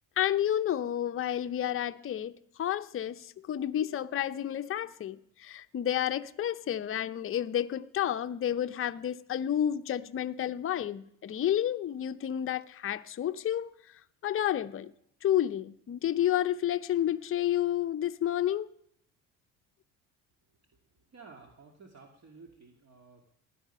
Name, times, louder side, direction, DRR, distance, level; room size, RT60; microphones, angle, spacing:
voice 1, 0.2-13.7 14.2-14.9 15.2-18.8, left 11 dB, 35° left, 0.7 m, -30 dB
voice 2, 21.1-23.3, right 4 dB, 40° right, 2.4 m, -53 dB
16.0 x 11.0 x 5.6 m
hypercardioid pair, 65°, 39 cm